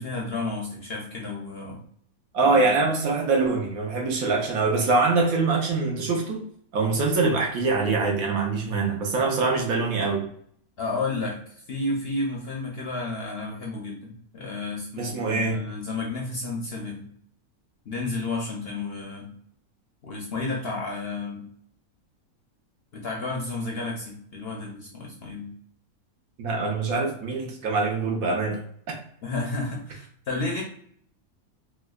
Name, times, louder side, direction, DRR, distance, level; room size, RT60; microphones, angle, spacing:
voice 1, 0.0-1.8 2.4-2.7 10.8-11.4 11.7-17.1 17.9-19.3 20.0-21.5 22.9-25.5 29.2-30.6, left 3 dB, 60° left, -1 dB, 0.7 m, -31 dB
voice 2, 2.3-6.4 6.7-10.3 15.0-15.6 26.4-28.6 28.9-29.0, right 3 dB, 70° right, 1 dB, 1.2 m, -24 dB
4.5 x 2.2 x 2.3 m, 0.63 s
omnidirectional pair, 1.6 m